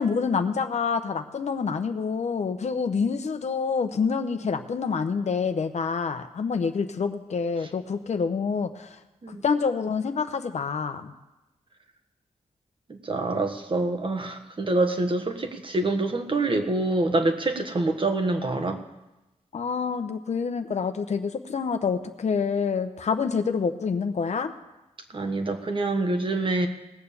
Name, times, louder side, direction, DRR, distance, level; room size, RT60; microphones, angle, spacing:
voice 1, 0.0-9.0 9.3-11.1 19.5-24.5, left 5 dB, 65° left, 8 dB, 0.9 m, -27 dB
voice 2, 12.9-18.8 25.1-26.7, right 2 dB, 45° right, 5 dB, 1.5 m, -26 dB
18.5 x 6.9 x 6.9 m, 1.0 s
cardioid pair, 70°, 13 cm